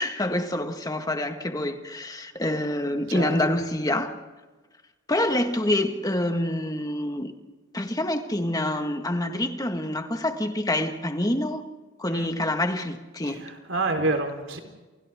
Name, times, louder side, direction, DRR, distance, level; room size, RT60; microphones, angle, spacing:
voice 1, 0.0-4.1 5.1-7.3 7.7-11.6 12.0-13.4, left 1 dB, 20° left, 1.7 m, -26 dB
voice 2, 13.2-14.6, right 2 dB, 65° right, 4.1 m, -28 dB
29.0 x 29.0 x 3.7 m
head